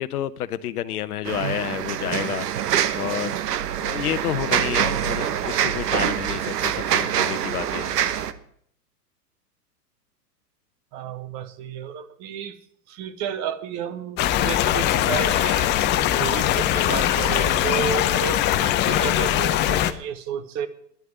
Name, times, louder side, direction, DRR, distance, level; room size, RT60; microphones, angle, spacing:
voice 1, 0.0-8.0, left 12 dB, 65° left, 0.9 m, -30 dB
sound 1, 1.3-8.3, right 10 dB, 65° right, 1.2 m, -25 dB
voice 2, 10.9-12.6 12.9-15.7 16.2-20.7, right 7 dB, 35° right, 1.4 m, -32 dB
sound 2, 14.2-19.9, left 12 dB, 20° left, 0.7 m, -21 dB
10.5 x 9.3 x 9.4 m
hypercardioid pair, 110°, 50 cm